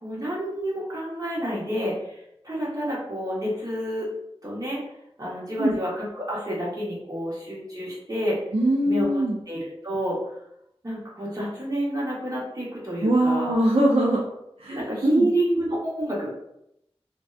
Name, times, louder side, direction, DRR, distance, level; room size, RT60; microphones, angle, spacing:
voice 1, 0.0-2.2 2.4-4.1 4.4-4.8 5.2-8.4 8.8-9.1 9.5-10.2 10.8-13.5 14.7-16.3, right 1 dB, 35° right, -6 dB, 1.0 m, -29 dB
voice 2, 8.5-9.4 13.0-14.2 14.6-15.3, right 1 dB, 70° right, -4 dB, 0.4 m, -22 dB
2.6 x 2.2 x 2.3 m, 0.79 s
wide cardioid pair, 45°, 10 cm